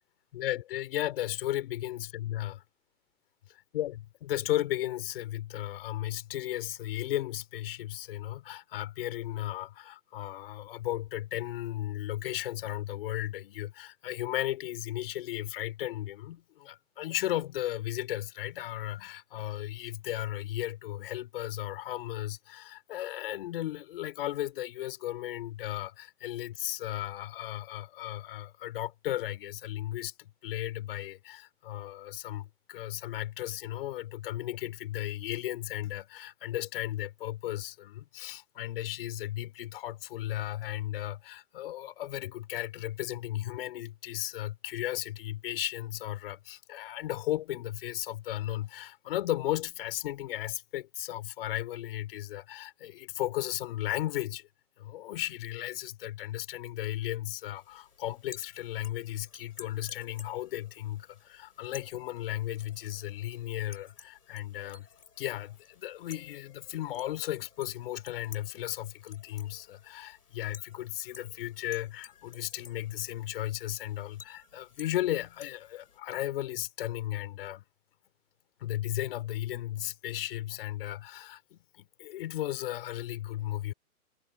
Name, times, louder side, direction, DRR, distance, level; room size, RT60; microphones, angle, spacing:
voice 1, 0.3-2.6 3.7-54.5 54.8-64.9 65.2-77.6 78.6-83.7, left 14 dB, 40° left, 5.3 m, -35 dB
sound 1, 57.6-76.0, left 6 dB, 90° left, 4.9 m, -54 dB
hypercardioid pair, 155°, 44 cm